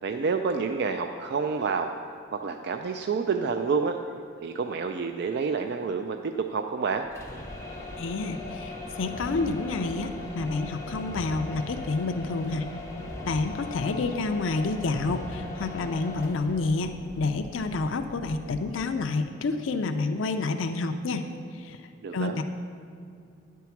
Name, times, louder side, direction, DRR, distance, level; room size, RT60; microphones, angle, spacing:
voice 1, 0.0-1.9 2.3-4.0 4.4-7.1 22.0-22.4, right 5 dB, 55° right, 6 dB, 0.4 m, -28 dB
sound 1, 7.0-18.9, left 2 dB, 15° left, 1.0 m, -39 dB
voice 2, 8.0-12.7 13.3-21.2 21.6-21.8 22.1-22.4, left 3 dB, 75° left, 6 dB, 0.5 m, -29 dB
10.0 x 4.6 x 7.1 m, 2.4 s
head